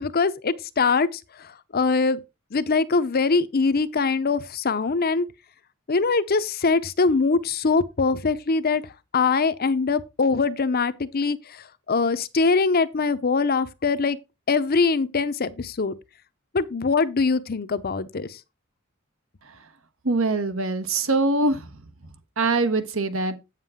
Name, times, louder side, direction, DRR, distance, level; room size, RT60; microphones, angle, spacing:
voice 1, 0.0-2.2 2.5-5.3 5.9-14.2 14.5-15.9 16.5-18.4, left 4 dB, 45° left, 0.7 m, -23 dB
voice 2, 20.0-21.6 22.4-23.4, right 3 dB, 70° right, 1.2 m, -23 dB
8.6 x 7.4 x 3.6 m
head